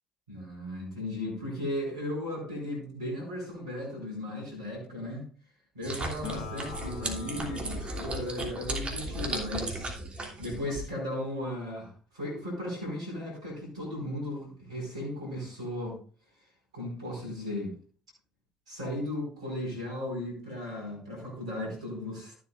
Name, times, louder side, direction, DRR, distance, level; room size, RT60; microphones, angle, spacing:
voice 1, 0.3-5.2 5.7-16.0 16.7-17.7 18.7-22.3, left 1 dB, 85° right, -2 dB, 4.9 m, -36 dB
sound 1, 5.8-10.9, right 2 dB, 40° right, 3.0 m, -36 dB
Acoustic guitar, 6.2-9.8, left 5 dB, 70° left, 1.8 m, -44 dB
13.5 x 8.5 x 2.5 m, 0.41 s
hypercardioid pair, 50°, 3 cm